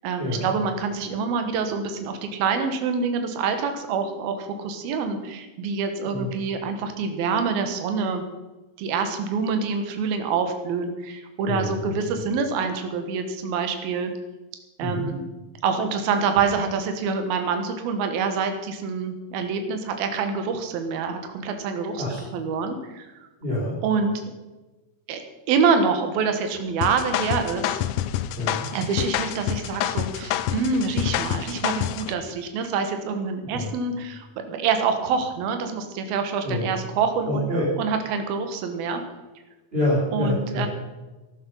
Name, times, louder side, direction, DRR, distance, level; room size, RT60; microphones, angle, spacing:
voice 1, 0.0-8.2 8.8-14.1 14.8-15.2 15.6-22.0 22.3-23.1 23.8-24.2 25.1-25.2 25.5-27.8 28.7-39.0 40.1-40.7, right 5 dB, 75° right, 6 dB, 3.2 m, -26 dB
voice 2, 11.5-11.8 14.8-15.1 22.0-22.2 23.4-23.8 28.3-28.7 33.5-33.7 36.4-36.7 37.3-37.7 39.7-40.7, left 1 dB, 15° right, -9 dB, 4.6 m, -26 dB
sound 1, 26.8-32.1, left 11 dB, 80° left, 1.8 m, -27 dB
14.0 x 12.0 x 5.5 m, 1.1 s
omnidirectional pair, 4.3 m